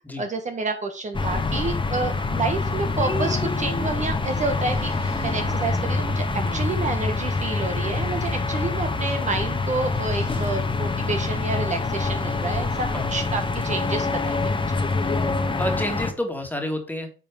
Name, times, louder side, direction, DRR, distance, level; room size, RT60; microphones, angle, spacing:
voice 1, 0.2-4.9 5.2-6.3 6.5-14.5, right 3 dB, 40° right, 5 dB, 1.4 m, -29 dB
sound 1, 1.1-16.1, left 3 dB, 25° left, 1.3 m, -25 dB
Wind, 3.1-13.8, right 3 dB, 60° right, 3.4 m, -45 dB
voice 2, 15.0-17.1, left 1 dB, 10° left, 4 dB, 2.2 m, -30 dB
8.9 x 4.4 x 5.1 m, 0.35 s
cardioid pair, 90°, 20 cm